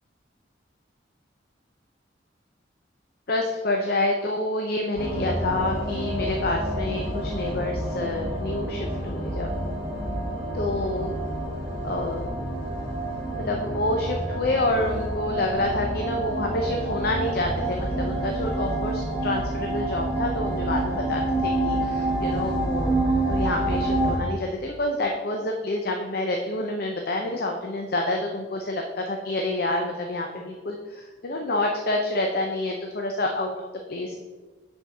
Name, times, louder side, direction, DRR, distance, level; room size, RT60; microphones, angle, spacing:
voice 1, 3.3-9.6 10.5-11.1 11.8-12.3 13.4-22.9 23.3-33.5 33.9-34.2, left 2 dB, 55° left, 2 dB, 0.6 m, -28 dB
sound 1, 5.0-24.2, right 1 dB, 40° right, 2.4 m, -28 dB
5.6 x 4.6 x 6.2 m, 1.3 s
head